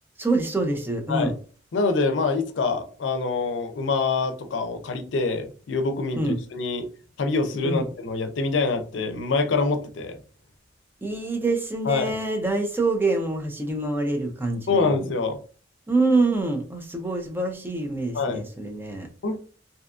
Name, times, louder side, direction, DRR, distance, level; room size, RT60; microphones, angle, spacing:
voice 1, 0.2-1.3 6.2-6.4 7.6-7.8 11.0-14.9 15.9-19.1, right 2 dB, 10° right, 0.4 m, -25 dB
voice 2, 1.7-6.9 7.2-10.2 11.9-12.1 14.7-15.4 18.1-18.4 19.2-19.4, left 3 dB, 85° left, 0.4 m, -25 dB
2.6 x 2.3 x 2.4 m
head